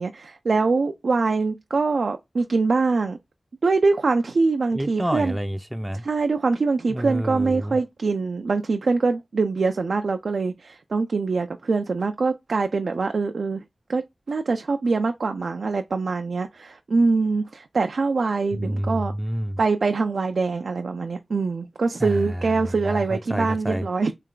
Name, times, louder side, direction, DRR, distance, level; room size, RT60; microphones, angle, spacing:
voice 1, 0.0-3.2 3.6-5.4 6.0-13.6 13.9-19.1 19.6-24.1, right 4 dB, 85° right, 0.3 m, -23 dB
voice 2, 4.7-6.1 6.9-7.8 18.5-19.6 22.0-23.9, equal, 10° right, 0.4 m, -28 dB
3.3 x 3.2 x 3.7 m
wide cardioid pair, 50°, 0 cm